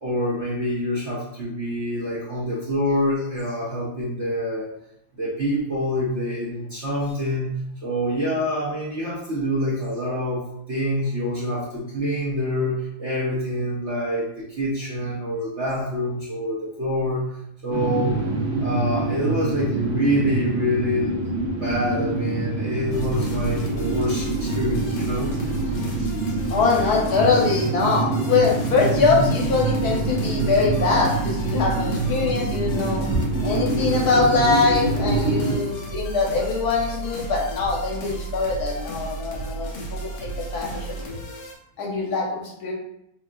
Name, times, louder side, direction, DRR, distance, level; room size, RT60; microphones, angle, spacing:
voice 1, 0.0-4.7 5.2-7.5 7.8-17.2 17.6-18.2 18.6-25.3 25.6-25.7 26.0-26.1 33.1-33.2, equal, 60° right, -7 dB, 0.7 m, -26 dB
sound 1, 17.7-35.5, right 2 dB, 45° right, 1.1 m, -25 dB
sound 2, 22.9-41.5, right 3 dB, 80° left, 0.6 m, -34 dB
voice 2, 26.5-33.0 33.4-41.2 41.8-42.7, left 4 dB, 60° left, -2 dB, 1.1 m, -23 dB
5.8 x 2.7 x 2.4 m, 0.77 s
omnidirectional pair, 2.3 m